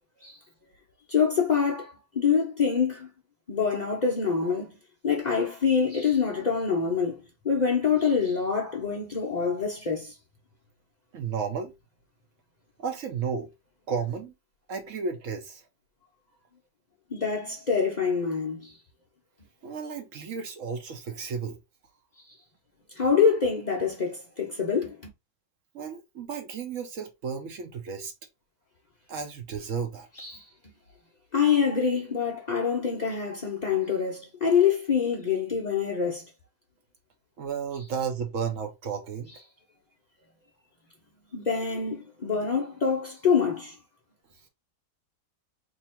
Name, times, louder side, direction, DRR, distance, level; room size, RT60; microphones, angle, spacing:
voice 1, 1.1-3.1 3.5-4.7 5.0-10.1 17.1-18.7 23.0-25.0 30.2-30.4 31.3-36.2 41.3-43.8, left 6 dB, 90° left, 0.3 m, -25 dB
voice 2, 11.1-11.7 12.8-13.5 13.9-14.3 14.7-15.6 19.6-21.6 25.7-28.1 29.1-30.1 37.4-39.3, right 6 dB, 60° right, 0.9 m, -33 dB
2.9 x 2.9 x 4.2 m
omnidirectional pair, 1.9 m